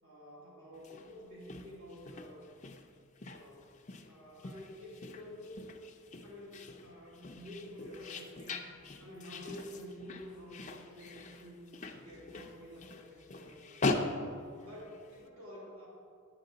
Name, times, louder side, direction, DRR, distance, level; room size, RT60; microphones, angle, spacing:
voice 1, 0.0-2.5 3.3-3.7 4.1-5.7 6.2-8.6 9.0-11.6 11.9-14.1 14.6-15.9, left 1 dB, 75° right, -6 dB, 2.7 m, -49 dB
sound 1, 0.7-15.2, left 3 dB, 35° left, 0.5 m, -41 dB
11.0 x 8.5 x 3.9 m, 2.3 s
head